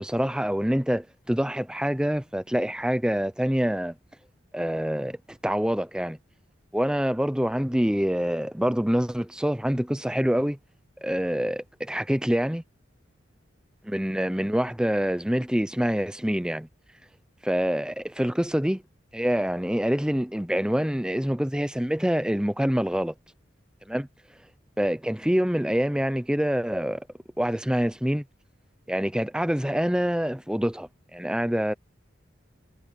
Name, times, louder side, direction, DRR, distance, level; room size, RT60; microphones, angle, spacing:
voice 1, 0.0-3.9 4.5-6.2 6.7-10.6 11.0-12.6 13.8-16.7 17.4-18.8 19.1-23.1 23.9-24.1 24.8-27.1 27.4-28.2 28.9-31.7, equal, 5° right, 0.6 m, -26 dB
head